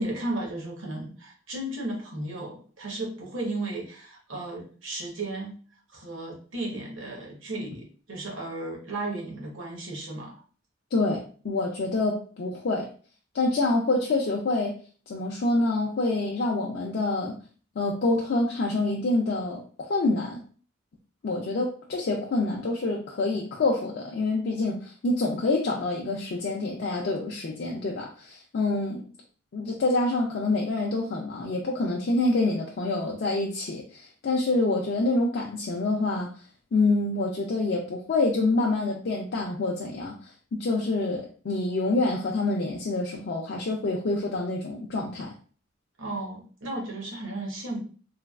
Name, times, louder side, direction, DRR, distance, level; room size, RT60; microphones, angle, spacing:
voice 1, 0.0-5.6 5.9-10.3 46.0-47.8, right 2 dB, 75° right, -1 dB, 1.0 m, -34 dB
voice 2, 10.9-12.9 13.3-14.7 15.1-17.4 17.8-20.4 21.2-29.1 29.5-36.3 36.7-40.1 40.5-45.3, left 2 dB, 55° left, -1 dB, 0.4 m, -26 dB
3.2 x 2.3 x 2.3 m, 0.41 s
head